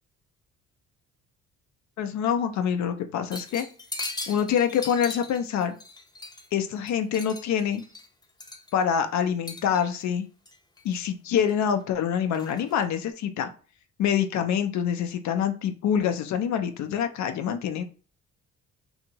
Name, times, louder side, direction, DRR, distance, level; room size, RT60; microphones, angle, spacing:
voice 1, 2.0-3.6 4.3-5.8 6.5-7.8 8.7-10.2 10.8-13.5 14.0-17.8, left 8 dB, 65° left, 8 dB, 0.5 m, -26 dB
sound 1, 3.3-6.6 6.9-8.9 9.4-10.0 10.4-11.0 11.4-11.9 12.3-12.9, left 2 dB, 15° left, 0.6 m, -39 dB
2.7 x 2.5 x 2.8 m, 0.38 s
cardioid pair, 90°, 30 cm